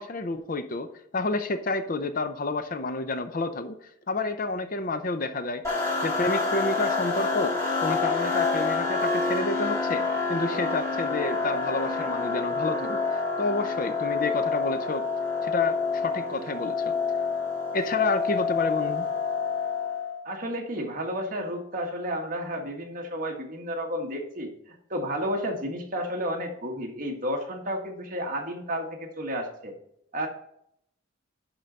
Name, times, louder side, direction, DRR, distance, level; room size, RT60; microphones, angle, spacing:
voice 1, 0.0-3.8 4.1-5.6 6.0-7.5 7.8-10.0 10.3-13.0 13.4-15.0 15.4-16.9 17.7-19.1, left 3 dB, 40° left, 9 dB, 0.6 m, -29 dB
sound 1, 5.6-20.2, left 4 dB, 15° left, 2.0 m, -28 dB
voice 2, 20.2-24.5 24.9-29.7 30.1-30.3, equal, 40° right, 1 dB, 1.6 m, -31 dB
11.0 x 3.9 x 5.6 m, 0.73 s
head